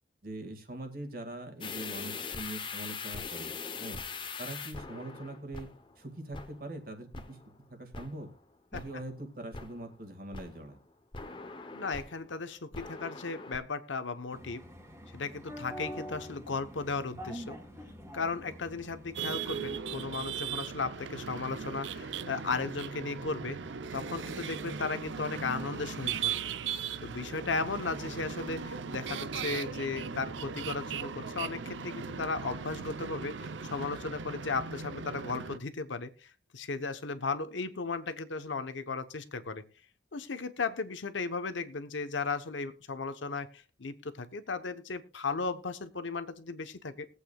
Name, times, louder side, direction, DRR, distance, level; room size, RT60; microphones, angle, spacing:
voice 1, 0.2-3.5 3.8-4.0 4.4-5.7 6.0-7.4 7.7-8.3 8.7-10.8, right 1 dB, 50° right, 6 dB, 2.0 m, -42 dB
sound 1, 1.6-6.0 6.3-6.8 7.1-7.6 7.9-8.4 8.7-9.2 9.5-9.9 10.3-12.4 12.7-13.6, left 4 dB, 25° left, 0.9 m, -42 dB
voice 2, 11.7-14.6 15.1-17.6 18.1-23.6 23.9-26.4 27.0-39.6 40.1-47.1, left 4 dB, 90° left, 10 dB, 1.0 m, -36 dB
sound 2, 14.3-20.0, equal, 15° right, 2.1 m, -45 dB
sound 3, 19.2-35.6, right 6 dB, 80° right, 0.6 m, -38 dB
20.5 x 8.3 x 2.3 m, 0.33 s
head